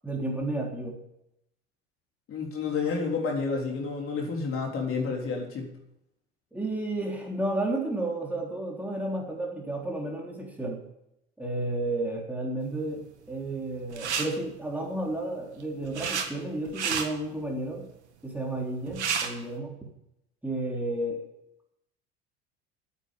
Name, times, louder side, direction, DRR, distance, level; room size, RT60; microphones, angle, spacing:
voice 1, 0.0-1.0 6.5-10.8 11.4-17.9 18.2-19.9 20.4-21.2, right 2 dB, 5° right, -2 dB, 3.7 m, -32 dB
voice 2, 2.3-5.7, left 4 dB, 40° left, 0 dB, 3.7 m, -30 dB
sound 1, 13.9-14.3 15.5-16.3 16.6-17.0 18.6-18.7 18.9-19.3, right 6 dB, 85° right, 1.8 m, -30 dB
9.3 x 8.8 x 9.1 m, 0.82 s
hypercardioid pair, 75°, 33 cm